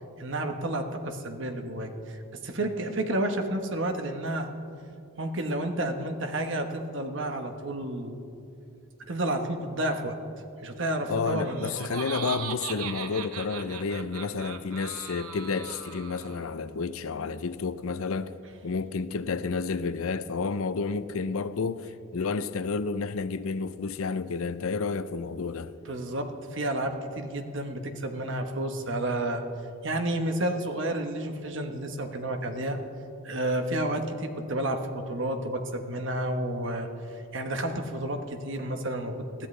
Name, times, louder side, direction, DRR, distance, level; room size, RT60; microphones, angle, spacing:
voice 1, 0.2-4.5 5.2-8.2 9.1-10.2 10.6-11.7 25.8-29.4 29.8-32.8 33.2-36.9 37.3-39.5, right 1 dB, 60° right, 1.1 m, -31 dB
voice 2, 11.1-18.3 18.6-25.7, left 4 dB, 75° left, 0.5 m, -30 dB
Laughter, 11.3-16.5, right 7 dB, 90° right, 0.8 m, -39 dB
21.0 x 13.5 x 3.3 m
head